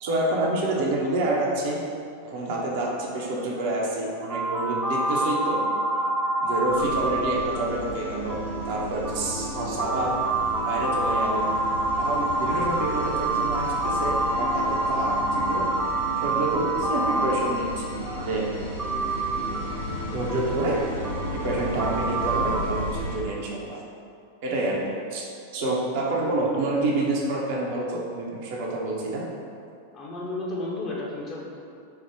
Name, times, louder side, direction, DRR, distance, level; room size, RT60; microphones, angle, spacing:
voice 1, 0.0-1.8 2.2-5.6 5.9-6.1 6.4-8.4 8.7-10.1 10.6-11.5 12.0-15.9 16.2-18.5 19.6-19.7 20.1-20.8 21.3-23.8 24.4-25.2 25.5-29.3, right 2 dB, 50° right, -3 dB, 0.6 m, -28 dB
sound 1, 4.3-18.1 18.8-22.6, right 2 dB, 10° right, 0.3 m, -27 dB
sound 2, 6.7-23.2, left 1 dB, 75° left, 0.7 m, -34 dB
voice 2, 29.9-31.5, left 2 dB, 25° left, -4 dB, 0.6 m, -32 dB
4.4 x 2.1 x 3.4 m, 2.4 s
figure-of-eight pair, 90°, 0 cm